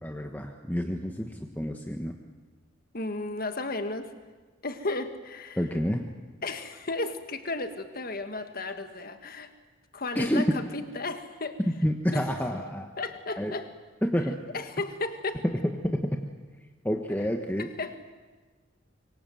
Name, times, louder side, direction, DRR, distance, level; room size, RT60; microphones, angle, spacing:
voice 1, 0.0-2.2 5.6-6.0 10.1-10.5 11.7-12.9 13.4-13.5 14.0-14.4 15.8-16.2 16.8-17.7, equal, 10° left, 4 dB, 1.3 m, -29 dB
voice 2, 2.9-4.1 4.6-5.6 6.4-9.5 9.9-11.6 12.1-12.3 13.0-13.7 14.5-15.4 17.6-18.1, left 2 dB, 50° left, 8 dB, 1.6 m, -34 dB
25.5 x 23.5 x 7.8 m, 1.4 s
head